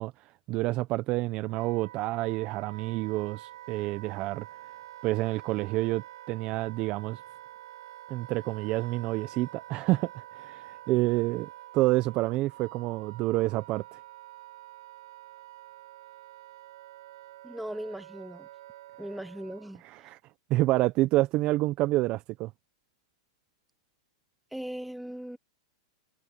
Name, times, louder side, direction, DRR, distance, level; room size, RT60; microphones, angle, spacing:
voice 1, 0.0-4.5 5.0-7.2 8.1-14.0 19.8-20.2 20.5-22.5, right 18 dB, 40° right, 0.9 m, -28 dB
Wind instrument woodwind instrument, 1.0-19.8, right 15 dB, 70° right, 3.8 m, -47 dB
voice 2, 17.4-18.5 19.0-19.8 24.5-25.4, right 1 dB, ahead, 1.0 m, -38 dB
hypercardioid pair, 125°, 3 cm